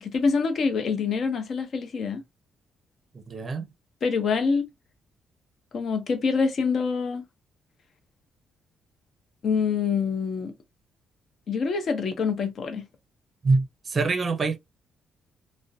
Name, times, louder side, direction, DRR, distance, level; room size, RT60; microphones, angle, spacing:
voice 1, 0.0-2.2 4.0-4.7 5.7-7.2 9.4-10.5 11.5-12.8, left 5 dB, 55° left, 0.7 m, -25 dB
voice 2, 3.3-3.7 13.4-14.6, right 3 dB, 35° right, 0.5 m, -25 dB
2.5 x 2.1 x 2.4 m
cardioid pair, 90°, 0 cm